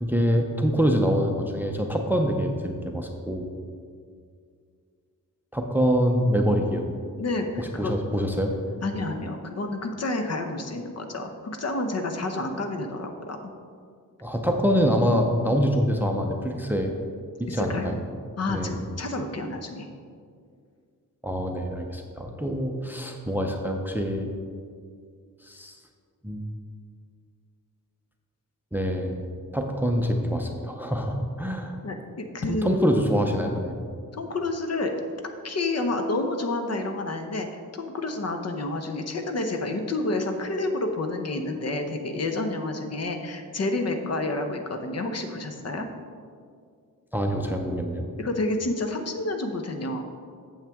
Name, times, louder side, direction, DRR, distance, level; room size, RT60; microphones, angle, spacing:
voice 1, 0.0-3.5 5.5-6.9 7.6-8.5 14.2-16.9 17.4-18.0 18.5-18.8 21.2-24.3 25.4-25.8 26.2-26.4 28.7-31.8 32.5-33.7 47.1-48.0, equal, 5° right, 3 dB, 0.5 m, -25 dB
voice 2, 7.2-7.9 8.8-13.4 17.5-17.9 18.4-19.9 31.8-32.9 34.1-34.9 35.4-45.9 48.2-50.0, left 2 dB, 50° left, 5 dB, 0.8 m, -29 dB
8.7 x 7.3 x 3.5 m, 2.2 s
wide cardioid pair, 145°, 34 cm